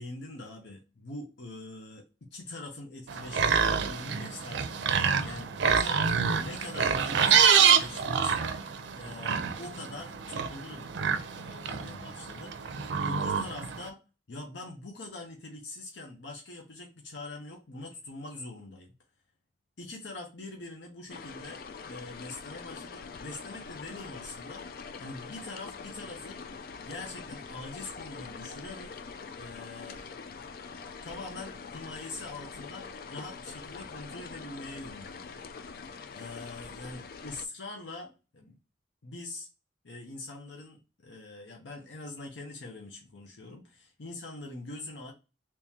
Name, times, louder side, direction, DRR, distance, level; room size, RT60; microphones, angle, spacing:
voice 1, 0.0-6.1 6.4-8.5 8.9-10.9 11.3-12.6 13.0-14.0 14.3-18.9 19.8-26.4 26.8-29.0 29.3-30.0 31.0-38.6 39.0-39.5 39.8-45.1, left 2 dB, 85° left, 1 dB, 0.8 m, -43 dB
sound 1, 3.1-13.9, right 7 dB, 85° right, 0.5 m, -27 dB
sound 2, 21.1-37.5, left 5 dB, 55° left, 0.3 m, -44 dB
3.6 x 3.0 x 2.9 m, 0.29 s
head